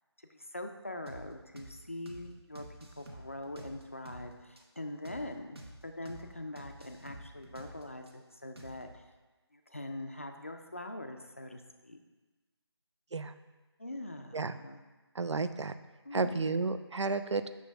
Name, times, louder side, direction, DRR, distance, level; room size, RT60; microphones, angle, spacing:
voice 1, 0.2-2.6 3.0-5.6 5.8-9.0 9.5-12.0 13.8-14.8 16.0-16.6, left 1 dB, 30° left, 5 dB, 0.4 m, -43 dB
sound 1, 1.1-1.2 1.6-1.7 2.1-2.2 2.5-4.2 4.6-4.7 5.0-5.2 5.5-5.7 6.0-6.2 6.6-8.1 8.6-9.0, right 1 dB, 65° right, 1.2 m, -48 dB
voice 2, 15.1-15.7 16.1-17.5, right 4 dB, 85° right, 11 dB, 0.5 m, -32 dB
7.3 x 6.1 x 3.4 m, 1.2 s
figure-of-eight pair, 170°, 14 cm